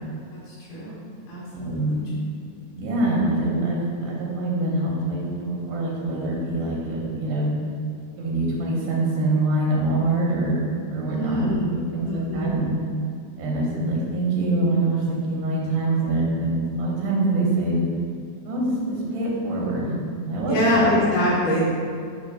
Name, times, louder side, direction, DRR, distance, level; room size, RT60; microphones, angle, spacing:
voice 1, 0.5-1.0 1.3-2.0 11.1-12.6 20.4-21.7, left 1 dB, 80° left, -7 dB, 3.4 m, -24 dB
voice 2, 1.5-2.0 2.8-7.6 8.2-12.8 13.4-17.9 18.5-20.0 20.2-20.9, right 2 dB, 85° right, -4 dB, 2.6 m, -24 dB
8.5 x 3.0 x 5.3 m, 2.2 s
omnidirectional pair, 3.7 m